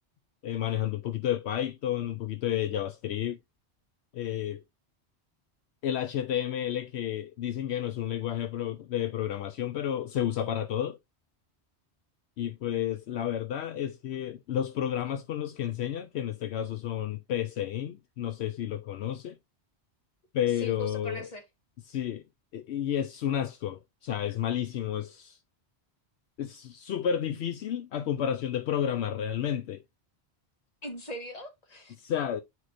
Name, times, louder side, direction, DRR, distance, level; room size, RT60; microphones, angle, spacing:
voice 1, 0.4-3.4 4.1-4.6 5.8-11.0 12.4-19.3 20.3-21.3 21.9-22.2 22.5-25.4 26.4-29.8 32.0-32.4, left 10 dB, 75° left, 0.9 m, -31 dB
voice 2, 20.5-21.4 30.8-31.9, left 1 dB, 35° left, 1.6 m, -40 dB
8.3 x 4.6 x 2.5 m
omnidirectional pair, 1.1 m